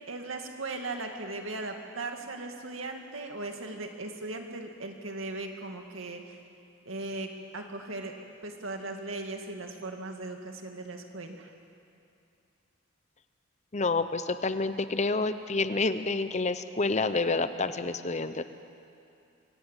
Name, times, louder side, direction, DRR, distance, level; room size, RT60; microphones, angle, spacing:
voice 1, 0.1-6.4 6.9-8.1 8.4-11.5, right 2 dB, 80° right, 4 dB, 2.3 m, -38 dB
voice 2, 13.7-18.4, left 3 dB, 35° left, 11 dB, 0.8 m, -28 dB
24.5 x 17.5 x 8.3 m, 2.6 s
head